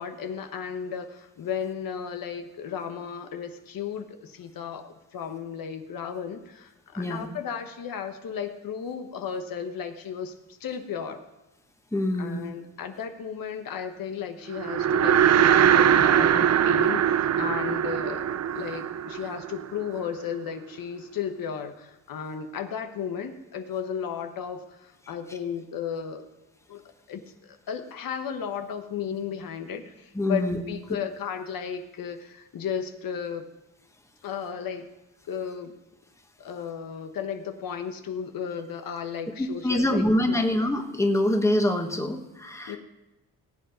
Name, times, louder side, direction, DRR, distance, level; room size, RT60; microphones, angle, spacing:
voice 1, 0.0-10.3 10.6-11.2 12.2-18.3 18.5-26.3 26.7-26.8 27.1-33.5 34.2-34.9 35.3-35.7 36.4-40.5 42.7-42.8, left 7 dB, 70° left, 6 dB, 1.2 m, -34 dB
voice 2, 7.0-7.3 11.9-12.5 30.1-30.6 39.4-42.8, left 1 dB, 10° left, 4 dB, 1.4 m, -25 dB
sound 1, 14.6-20.0, right 9 dB, 45° right, 0.5 m, -21 dB
18.0 x 8.0 x 5.1 m, 1.0 s
cardioid pair, 110°, 36 cm